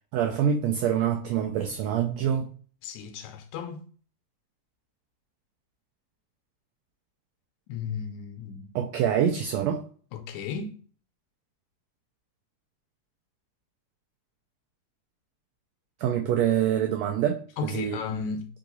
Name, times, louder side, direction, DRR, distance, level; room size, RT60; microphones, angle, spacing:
voice 1, 0.1-2.5 8.7-9.8 16.0-18.0, right 9 dB, 85° right, 1.5 m, -25 dB
voice 2, 2.8-3.8 7.7-8.7 10.1-10.7 17.6-18.6, left 6 dB, 80° left, 1.8 m, -34 dB
4.6 x 2.9 x 3.9 m
omnidirectional pair, 3.5 m